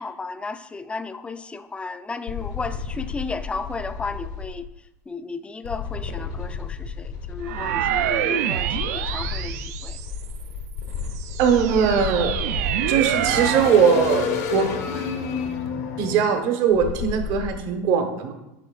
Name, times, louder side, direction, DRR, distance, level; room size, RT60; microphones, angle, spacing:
voice 1, 0.0-4.7 5.1-9.9, left 4 dB, 15° left, 12 dB, 0.3 m, -34 dB
sound 1, 2.3-4.6 5.6-8.2 8.7-17.5, left 6 dB, 80° left, 1.1 m, -31 dB
sound 2, 7.4-10.4 10.9-13.8, right 10 dB, 85° right, 0.5 m, -26 dB
voice 2, 11.4-12.3 12.9-14.7 16.0-18.3, right 7 dB, 60° right, 6 dB, 1.1 m, -20 dB
8.9 x 5.5 x 2.4 m, 0.92 s
supercardioid pair, 115°, 8 cm